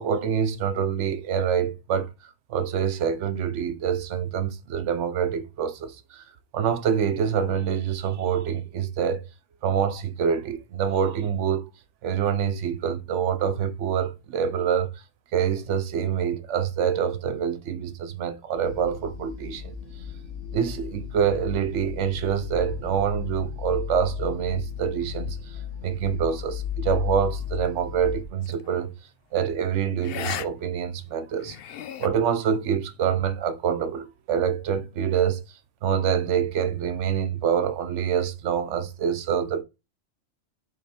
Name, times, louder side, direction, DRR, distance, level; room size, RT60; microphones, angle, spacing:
voice 1, 0.0-6.2 6.5-9.3 9.6-11.7 12.0-15.0 15.3-19.7 20.5-28.9 29.3-31.6 32.0-35.4 35.8-39.6, right 8 dB, 80° right, 1.0 m, -26 dB
sound 1, 18.6-28.2, left 9 dB, 80° left, 1.6 m, -35 dB
sound 2, 28.4-28.7 30.0-30.5 30.8-30.9 31.4-32.1, left 9 dB, 60° left, 0.7 m, -34 dB
6.6 x 3.6 x 4.3 m
omnidirectional pair, 1.2 m